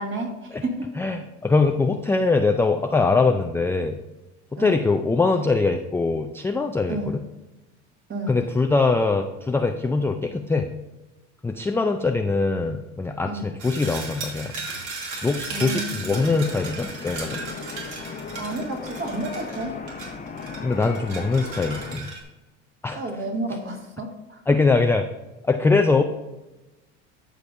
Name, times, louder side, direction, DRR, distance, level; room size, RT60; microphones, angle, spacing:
voice 1, 0.0-0.9 4.6-4.8 6.9-7.1 8.1-8.3 13.2-13.4 15.5-16.1 18.4-19.8 22.9-24.4, right 2 dB, 35° right, 2 dB, 2.0 m, -31 dB
voice 2, 1.0-4.0 4.5-7.2 8.3-10.7 11.4-14.5 15.2-17.4 20.6-22.1 22.8-23.0 24.5-25.1 25.4-26.0, left 3 dB, 5° left, 5 dB, 0.3 m, -22 dB
sound 1, 13.6-22.2, right 3 dB, 55° right, 2.5 m, -36 dB
sound 2, 16.1-22.0, left 5 dB, 25° left, 0.9 m, -37 dB
13.0 x 5.2 x 2.6 m, 1.1 s
hypercardioid pair, 85°, 36 cm